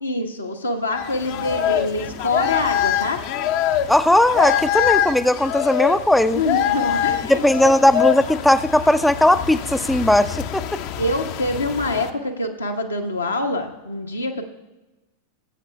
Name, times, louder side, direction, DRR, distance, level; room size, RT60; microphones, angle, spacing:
voice 1, 0.0-3.2 6.3-7.4 11.0-14.5, left 2 dB, 80° left, 3 dB, 1.1 m, -25 dB
sound 1, 0.9-12.1, left 10 dB, 45° left, 0.6 m, -24 dB
voice 2, 3.9-6.4 7.3-10.6, left 1 dB, 5° left, 12 dB, 0.3 m, -17 dB
19.0 x 8.1 x 2.2 m, 1.1 s
figure-of-eight pair, 90°, 0 cm